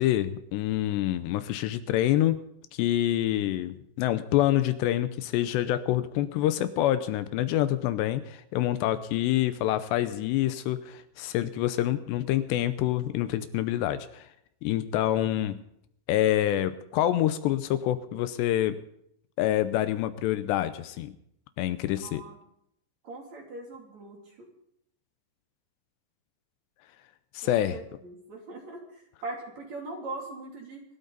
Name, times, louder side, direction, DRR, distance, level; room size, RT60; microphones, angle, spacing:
voice 1, 0.0-2.4 2.7-14.3 14.6-15.6 16.1-18.8 19.4-21.1 21.6-22.2 27.3-27.8, left 13 dB, 80° left, 12 dB, 2.8 m, -26 dB
voice 2, 22.0-22.4 23.0-24.5 27.4-30.8, right 2 dB, 45° right, 0 dB, 3.7 m, -41 dB
26.0 x 12.5 x 4.0 m, 0.75 s
omnidirectional pair, 5.1 m